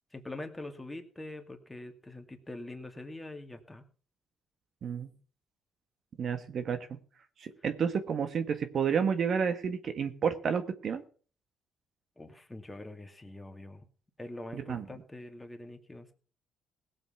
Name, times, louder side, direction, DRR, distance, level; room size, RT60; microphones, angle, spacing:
voice 1, 0.1-3.8 12.2-13.8 14.2-16.1, left 2 dB, 15° left, 5 dB, 2.4 m, -44 dB
voice 2, 4.8-5.1 6.2-6.8 7.4-11.0 14.5-14.8, right 6 dB, 55° right, 9 dB, 1.5 m, -30 dB
17.5 x 7.6 x 5.8 m, 0.40 s
cardioid pair, 90°, 0 cm